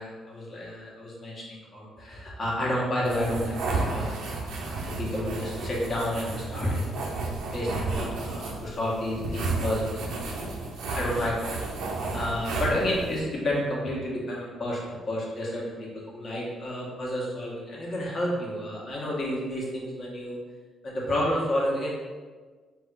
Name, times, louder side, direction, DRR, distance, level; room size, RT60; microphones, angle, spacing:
voice 1, 0.0-7.0 7.5-10.1 10.9-11.6 12.1-20.4 20.8-21.9, left 1 dB, 45° left, -4 dB, 1.4 m, -30 dB
sound 1, 3.0-13.2, right 3 dB, 80° right, 0.7 m, -32 dB
3.8 x 2.5 x 4.7 m, 1.4 s
cardioid pair, 90°, 0 cm